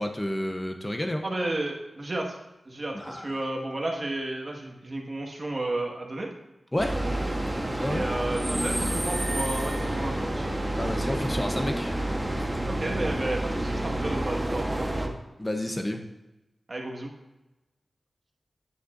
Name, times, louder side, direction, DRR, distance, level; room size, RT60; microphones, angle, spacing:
voice 1, 0.0-1.2 2.9-3.3 6.7-7.0 7.8-8.0 10.8-11.9 15.4-16.0, left 1 dB, 20° left, 4 dB, 0.8 m, -30 dB
voice 2, 1.2-2.4 2.7-6.3 6.9-7.2 7.8-10.5 12.7-15.1 16.7-17.1, right 2 dB, 45° right, 0 dB, 1.7 m, -32 dB
sound 1, 6.8-15.1, right 1 dB, 15° right, 1.2 m, -29 dB
10.0 x 9.2 x 2.6 m, 1.0 s
wide cardioid pair, 70°, 0 cm